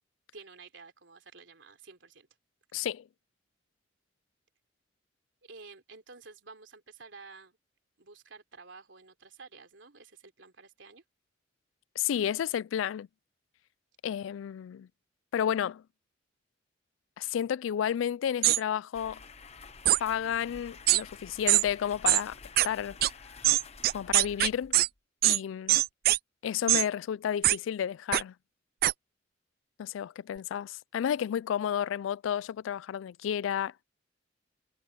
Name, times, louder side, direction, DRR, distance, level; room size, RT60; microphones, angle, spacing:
voice 1, 0.3-2.3 5.4-7.6 8.0-11.0 25.5-25.6, right 4 dB, 75° right, 3.4 m, -51 dB
voice 2, 2.7-3.1 12.0-13.1 14.0-14.9 15.3-15.8 17.2-19.2 20.0-22.4 22.6-23.0 23.9-24.8 25.2-25.8 26.4-28.3 29.8-33.8, left 9 dB, 85° left, 0.3 m, -31 dB
sound 1, 18.4-18.6 19.9-20.0 20.9-21.0 21.5-21.6 22.1-22.2 22.6-22.7 23.0-23.1 23.4-24.9 25.2-25.4 25.7-26.2 26.7-26.9 27.4-27.6 28.1-28.2 28.8-28.9, right 16 dB, 55° right, 0.3 m, -22 dB
sound 2, 18.9-25.0, left 4 dB, 35° left, 1.0 m, -50 dB
head